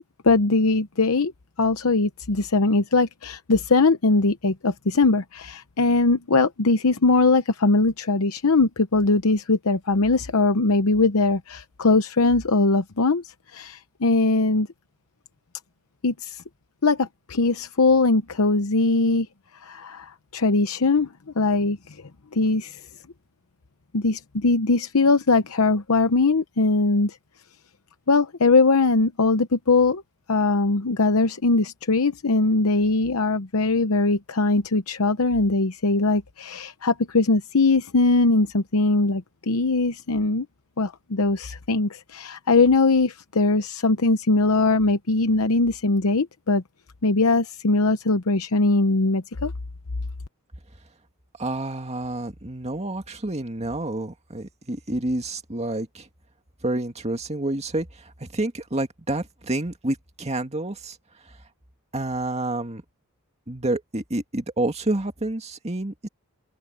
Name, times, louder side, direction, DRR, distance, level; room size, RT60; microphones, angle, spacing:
voice 1, 0.2-1.3 1.6-14.7 16.0-16.4 16.8-19.3 19.6-21.1 21.4-22.0 22.3-22.8 23.9-27.2 28.1-30.0 30.3-40.5 40.8-46.6 47.0-49.5, left 3 dB, 70° left, 0.9 m, -21 dB
voice 2, 51.4-56.1 56.6-61.0 61.2-61.3 61.9-62.8 63.5-66.1, right 2 dB, 30° right, 2.1 m, -29 dB
open air
head